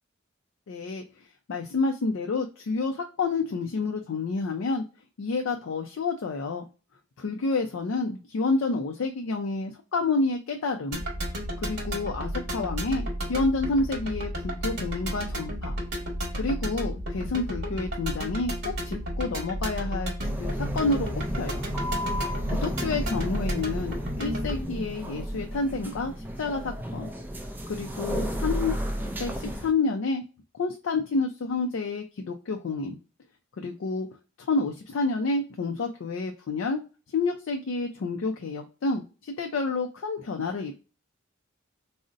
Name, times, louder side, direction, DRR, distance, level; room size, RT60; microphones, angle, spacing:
voice 1, 0.7-1.0 1.5-4.8 5.2-6.7 7.2-11.0 11.6-15.8 16.3-21.1 21.4-21.7 22.5-27.1 27.7-28.8 29.2-30.2 30.6-33.0 33.6-34.1 34.4-36.8 37.1-40.7, left 3 dB, 75° left, 4 dB, 0.4 m, -29 dB
sound 1, 10.9-24.6, equal, 55° right, 1.1 m, -32 dB
sound 2, 20.2-29.7, equal, 10° right, 0.3 m, -33 dB
3.8 x 2.0 x 2.4 m, 0.33 s
head